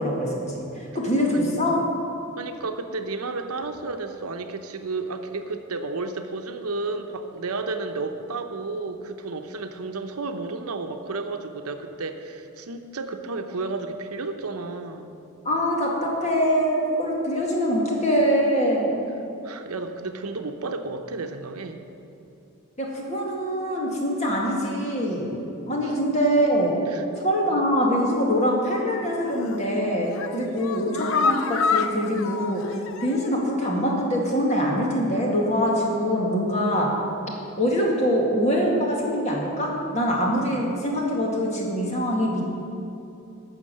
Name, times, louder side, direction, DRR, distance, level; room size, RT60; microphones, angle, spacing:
voice 1, 0.0-1.8 15.4-19.0 22.8-25.3 25.7-26.8 27.2-36.9 37.6-42.4, equal, 30° left, -2 dB, 1.9 m, -24 dB
voice 2, 1.3-1.7 2.4-15.2 19.4-21.8 25.8-26.0 26.9-27.0 27.5-27.6 30.3-30.7, right 3 dB, 80° right, 6 dB, 0.8 m, -32 dB
sound 1, 29.3-29.6 30.0-33.4 33.7-33.8 34.2-34.3, left 5 dB, 60° left, 0.5 m, -28 dB
12.0 x 6.4 x 7.7 m, 2.8 s
head